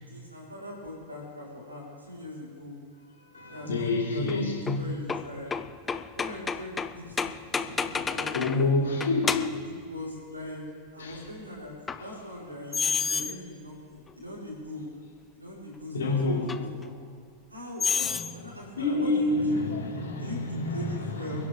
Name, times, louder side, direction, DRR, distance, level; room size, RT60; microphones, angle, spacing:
voice 1, 0.1-2.7 3.5-4.4 4.8-5.5 6.1-8.7 9.6-10.6 10.9-11.7 12.0-14.8 15.3-16.9 17.5-19.6 20.2-21.5, left 1 dB, 85° right, -4 dB, 4.6 m, -41 dB
voice 2, 3.3-4.8 7.5-7.7 8.3-9.3 11.0-11.2 12.0-12.1 15.9-16.5 18.0-18.2 18.8-21.5, left 2 dB, 65° left, -5 dB, 4.7 m, -28 dB
sound 1, 4.3-8.7 9.0-9.7 11.9-12.0 12.7-13.4 14.1-14.2 16.5-16.6 17.8-18.3, left 5 dB, 15° left, 0.6 m, -30 dB
27.0 x 11.0 x 3.7 m, 2.3 s
figure-of-eight pair, 90°, 0 cm